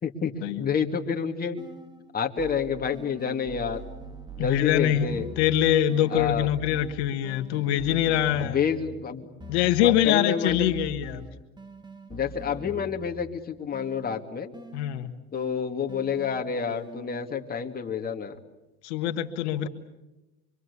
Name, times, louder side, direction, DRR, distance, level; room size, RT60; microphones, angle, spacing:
voice 1, 0.0-1.6 2.1-3.9 4.4-5.3 6.1-6.5 8.4-9.3 9.8-10.7 12.1-14.5 15.3-18.4, left 6 dB, 30° left, 3 dB, 2.6 m, -29 dB
sound 1, 1.6-2.1 2.4-9.0 9.4-13.4 13.7-17.4, right 1 dB, 15° right, 2.1 m, -44 dB
voice 2, 4.4-8.6 9.5-11.2 14.7-15.1 18.8-19.7, left 11 dB, 80° left, 7 dB, 1.6 m, -24 dB
25.5 x 24.5 x 8.5 m, 0.99 s
supercardioid pair, 100°, 32 cm